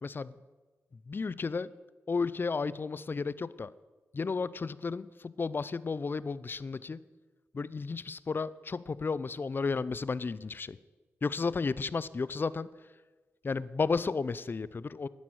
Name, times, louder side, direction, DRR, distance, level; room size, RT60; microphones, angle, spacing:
voice 1, 0.0-0.3 1.1-1.7 2.1-3.7 4.1-7.0 7.5-10.8 11.2-12.7 13.4-15.1, left 4 dB, 45° left, 18 dB, 0.6 m, -33 dB
11.5 x 9.9 x 8.0 m, 1.3 s
cardioid pair, 50°, 5 cm